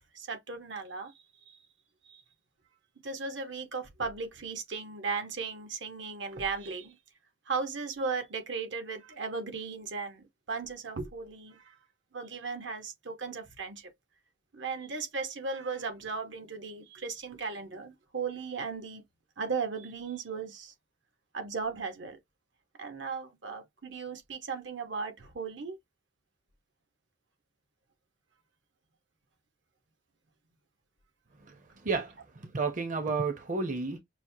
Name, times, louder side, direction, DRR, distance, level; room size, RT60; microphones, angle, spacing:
voice 1, 0.1-1.1 1.5-1.6 2.1-2.2 3.0-7.0 7.5-11.7 12.1-13.9 14.5-19.0 19.4-20.7 21.3-22.2 22.8-25.8, right 4 dB, 75° right, 1.0 m, -36 dB
voice 2, 31.8-34.0, right 4 dB, 45° right, 0.7 m, -32 dB
6.1 x 2.1 x 2.7 m
head